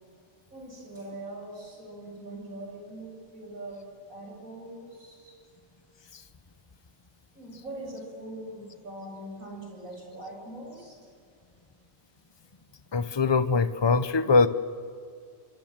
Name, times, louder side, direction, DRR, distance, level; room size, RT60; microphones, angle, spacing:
voice 1, 0.5-3.8 4.1-5.4 7.3-11.0, right 1 dB, 80° right, 0 dB, 8.4 m, -42 dB
voice 2, 12.9-14.5, left 4 dB, 25° left, 12 dB, 0.8 m, -22 dB
25.5 x 25.5 x 7.6 m, 2.3 s
omnidirectional pair, 1.4 m